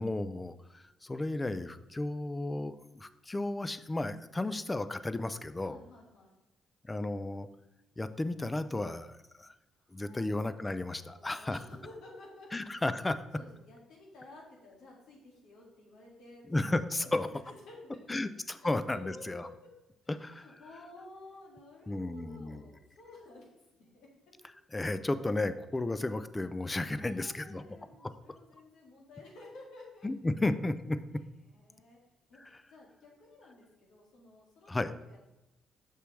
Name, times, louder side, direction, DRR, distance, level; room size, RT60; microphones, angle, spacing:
voice 1, 0.0-5.8 6.8-7.5 8.0-9.5 9.9-11.6 12.5-13.2 16.5-17.3 18.1-19.5 20.2-20.5 21.9-22.6 24.7-27.6 28.0-28.1 30.0-31.0 32.4-32.6 34.7-34.9, left 2 dB, 20° left, 12 dB, 0.4 m, -33 dB
voice 2, 5.6-6.4 9.8-12.5 13.3-16.6 17.0-18.2 18.6-19.7 20.0-24.1 27.0-30.1 31.4-32.0 32.3-32.4 32.7-35.2, left 2 dB, 85° left, -2 dB, 2.2 m, -53 dB
6.6 x 6.1 x 3.2 m, 0.95 s
cardioid pair, 90°, 0 cm